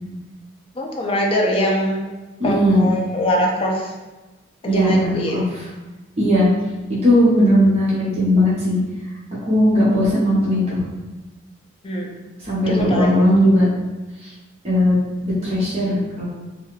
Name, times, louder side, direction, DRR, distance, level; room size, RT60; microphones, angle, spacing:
voice 1, 0.8-2.0 2.4-3.9 4.6-5.5 11.8-12.1 12.7-13.2, equal, 30° left, -1 dB, 0.4 m, -22 dB
voice 2, 2.4-2.9 4.7-5.4 6.2-6.5 7.0-8.8 9.5-10.8 12.4-13.7 14.2-14.3 14.6-14.9 15.2-16.3, equal, 35° right, -8 dB, 0.8 m, -17 dB
2.5 x 2.3 x 3.1 m, 1.2 s
head